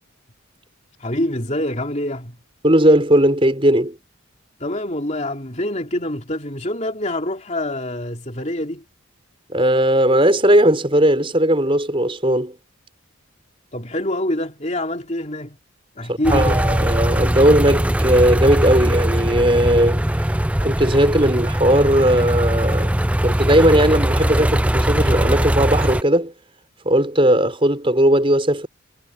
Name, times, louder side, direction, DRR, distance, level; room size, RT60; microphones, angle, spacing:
voice 1, 1.0-2.4 4.6-8.8 13.7-15.6 15.9-16.6, left 1 dB, 35° left, 3.3 m, -25 dB
voice 2, 2.6-4.0 9.5-12.6 16.1-20.0 20.6-26.3 26.8-28.7, right 1 dB, 25° right, 5.7 m, -17 dB
sound 1, 16.2-26.0, right 1 dB, 5° right, 0.6 m, -20 dB
head